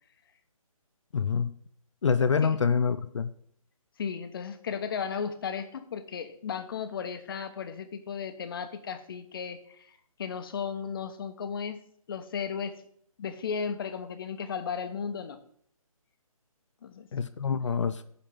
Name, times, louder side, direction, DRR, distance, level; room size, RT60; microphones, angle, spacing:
voice 1, 1.1-1.5 2.0-3.3 17.1-18.0, left 6 dB, 55° left, 13 dB, 0.6 m, -26 dB
voice 2, 4.0-9.6 10.2-12.8 13.2-15.4 16.8-17.1, left 6 dB, 40° left, 9 dB, 1.0 m, -35 dB
10.5 x 4.2 x 7.3 m, 0.64 s
figure-of-eight pair, 150°, 18 cm